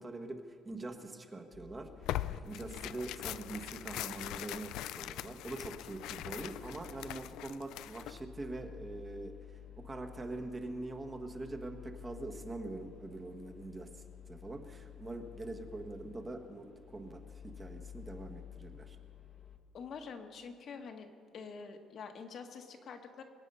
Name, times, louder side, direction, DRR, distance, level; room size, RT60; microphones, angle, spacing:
voice 1, 0.0-19.0, right 2 dB, 20° right, 4 dB, 1.4 m, -44 dB
sound 1, 1.5-19.6, left 9 dB, 30° left, 1.2 m, -53 dB
Tearing, 2.0-8.2, left 13 dB, 80° left, 0.4 m, -41 dB
voice 2, 19.7-21.1 21.3-23.2, left 5 dB, 50° left, 5 dB, 1.5 m, -46 dB
24.5 x 9.2 x 5.5 m, 2.2 s
cardioid pair, 130°, 0 cm